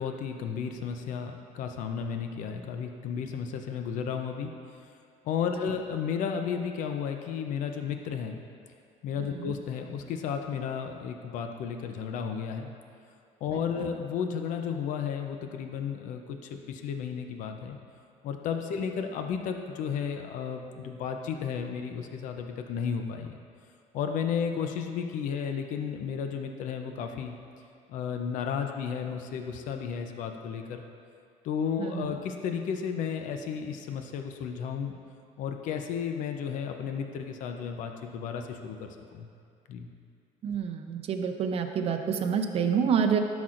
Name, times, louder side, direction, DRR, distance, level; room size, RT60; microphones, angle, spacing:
voice 1, 0.0-4.5 5.2-8.4 9.0-12.7 13.4-17.8 18.2-23.4 23.9-27.3 27.9-30.9 31.4-35.0 35.4-39.3 39.7-39.9, left 7 dB, 65° left, 5 dB, 0.6 m, -33 dB
voice 2, 31.8-32.1 40.4-43.2, right 7 dB, 45° right, 4 dB, 0.6 m, -28 dB
12.5 x 6.1 x 2.5 m, 2.4 s
cardioid pair, 135°, 14 cm